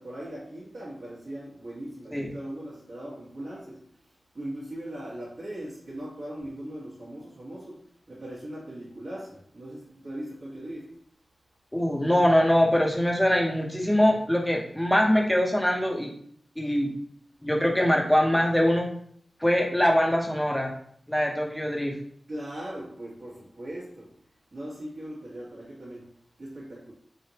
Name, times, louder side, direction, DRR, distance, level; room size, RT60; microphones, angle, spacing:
voice 1, 0.0-10.9 22.3-24.1 24.5-26.1 26.4-26.9, right 1 dB, 60° right, -7 dB, 1.2 m, -39 dB
voice 2, 11.7-16.1 16.6-16.9 17.4-18.9 19.4-20.7 21.1-21.9, equal, 5° left, -1 dB, 0.7 m, -23 dB
4.0 x 3.3 x 2.8 m, 0.63 s
wide cardioid pair, 100°, 0 cm